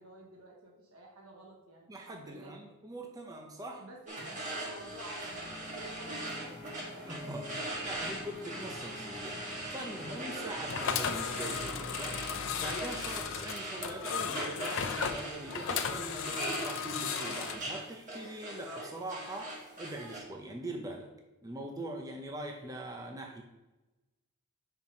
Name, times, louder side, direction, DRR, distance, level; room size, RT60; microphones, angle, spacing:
voice 1, 0.0-2.6 3.8-7.1 7.6-8.0, right 1 dB, 75° right, -1 dB, 1.3 m, -52 dB
voice 2, 1.9-3.9 7.1-12.2 12.5-21.1 21.4-23.4, right 1 dB, 15° right, 1 dB, 0.7 m, -42 dB
sound 1, 4.1-20.2, right 1 dB, 35° right, 1.5 m, -41 dB
sound 2, 4.3-13.4, left 2 dB, 30° left, 1.1 m, -47 dB
sound 3, 10.7-17.6, left 7 dB, 60° left, 0.6 m, -35 dB
5.6 x 4.5 x 5.3 m, 1.0 s
head